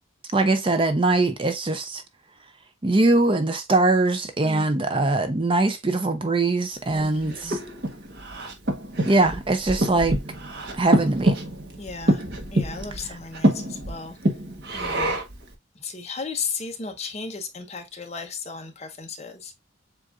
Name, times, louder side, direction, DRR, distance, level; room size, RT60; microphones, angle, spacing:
voice 1, 0.3-2.0 2.8-7.6 9.0-10.2 10.7-11.4 13.0-13.2, right 2 dB, 25° right, 0.5 m, -22 dB
voice 2, 4.4-5.1 6.9-7.6 11.8-12.2 12.5-14.2 14.7-15.2 15.8-19.5, left 4 dB, 35° left, 0.9 m, -35 dB
Breathing, 6.9-15.4, right 1 dB, 55° right, 1.0 m, -26 dB
7.4 x 2.5 x 2.4 m
head